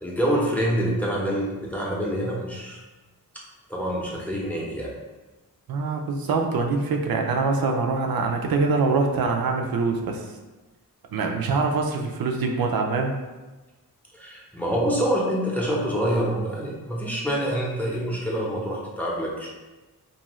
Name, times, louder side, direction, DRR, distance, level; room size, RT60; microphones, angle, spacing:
voice 1, 0.0-2.8 3.7-4.9 14.1-19.5, equal, 5° left, -4 dB, 0.7 m, -26 dB
voice 2, 5.7-10.3 11.1-13.1, right 4 dB, 90° right, 3 dB, 0.5 m, -24 dB
2.6 x 2.5 x 3.0 m, 1.1 s
wide cardioid pair, 95°, 35 cm